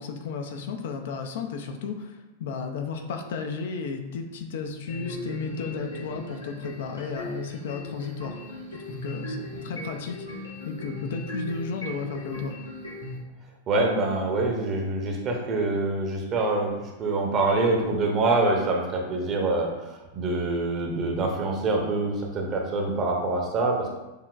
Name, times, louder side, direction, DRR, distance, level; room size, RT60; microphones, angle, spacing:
voice 1, 0.0-8.4 8.9-12.6, left 5 dB, 55° left, 4 dB, 0.5 m, -33 dB
sound 1, 4.9-13.2, equal, 85° left, 1.5 m, -38 dB
voice 2, 13.7-16.7 17.0-23.9, right 2 dB, 35° right, 1 dB, 0.9 m, -25 dB
6.6 x 2.9 x 2.5 m, 1.1 s
figure-of-eight pair, 90°, 0 cm